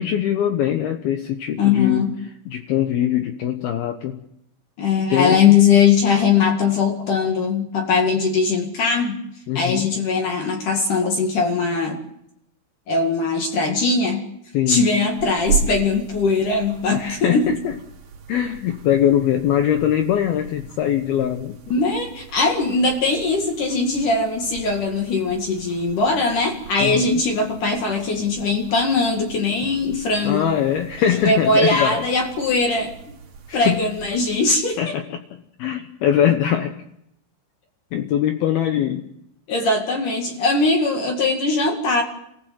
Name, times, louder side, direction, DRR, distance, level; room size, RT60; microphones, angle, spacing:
voice 1, 0.0-2.1 2.5-4.2 5.1-5.5 9.5-9.9 14.5-14.8 16.9-17.7 18.3-21.6 26.8-27.1 30.2-32.0 33.5-33.8 34.8-35.2 35.6-36.8 37.9-39.1, left 10 dB, 75° left, 6 dB, 2.3 m, -22 dB
voice 2, 1.6-2.1 4.8-9.2 9.5-12.0 12.9-14.2 14.7-17.5 21.7-30.5 31.2-32.9 33.5-34.9 39.5-42.0, left 4 dB, 50° left, 3 dB, 2.9 m, -20 dB
sound 1, 14.9-34.6, right 6 dB, 60° right, 3.8 m, -36 dB
28.0 x 15.5 x 7.7 m, 0.78 s
omnidirectional pair, 5.7 m